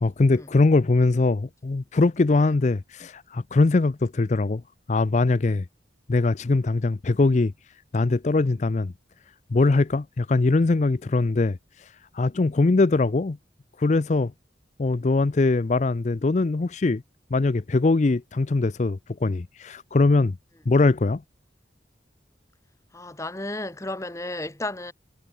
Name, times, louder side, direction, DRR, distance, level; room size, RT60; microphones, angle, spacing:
voice 1, 0.0-4.6 4.9-5.7 6.1-7.5 7.9-8.9 9.5-11.6 12.1-13.4 13.8-14.3 14.8-17.0 17.3-20.4 20.7-21.2, left 3 dB, 40° left, 0.5 m, -21 dB
voice 2, 22.9-24.9, left 2 dB, 15° left, 1.3 m, -33 dB
head